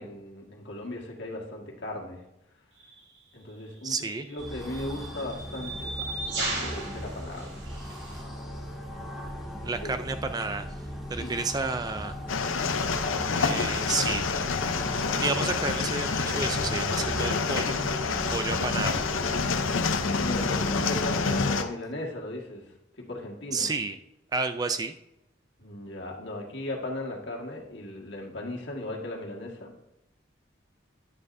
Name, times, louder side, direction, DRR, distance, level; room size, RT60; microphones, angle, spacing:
voice 1, 0.0-2.2 3.3-7.5 9.8-10.0 11.2-11.4 20.1-23.7 25.6-29.8, left 1 dB, 60° left, -1 dB, 1.7 m, -37 dB
sound 1, 2.8-3.0 4.0-8.2, right 2 dB, 65° right, 2.2 m, -36 dB
voice 2, 3.8-4.3 9.6-10.7 11.1-12.2 13.3-14.2 15.2-17.8 18.1-19.0 23.5-24.0 24.3-24.9, right 4 dB, 20° right, 9 dB, 0.3 m, -31 dB
sound 2, 4.4-21.5, equal, ahead, 1.9 m, -37 dB
sound 3, 12.3-21.6, left 5 dB, 90° left, 0.7 m, -28 dB
9.7 x 9.7 x 2.6 m, 0.86 s
head